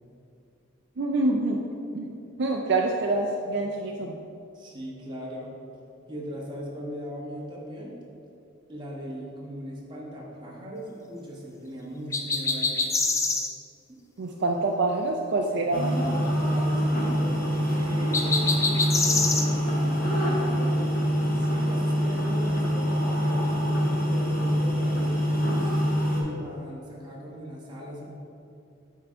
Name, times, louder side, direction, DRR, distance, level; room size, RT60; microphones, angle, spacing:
voice 1, 1.0-1.6 1.9-4.2 14.2-15.9, right 2 dB, 55° right, 1 dB, 0.4 m, -26 dB
voice 2, 4.5-5.6 6.1-8.0 8.7-12.9 13.9-14.0 15.6-16.0 16.4-18.5 18.9-23.5 24.0-25.7 26.1-28.1, equal, 20° right, -4 dB, 1.2 m, -39 dB
sound 1, 12.1-13.5 18.1-19.5, left 3 dB, 15° left, 0.4 m, -25 dB
sound 2, 15.7-26.2, equal, 45° left, 1.5 m, -25 dB
8.3 x 3.7 x 4.5 m, 2.6 s
head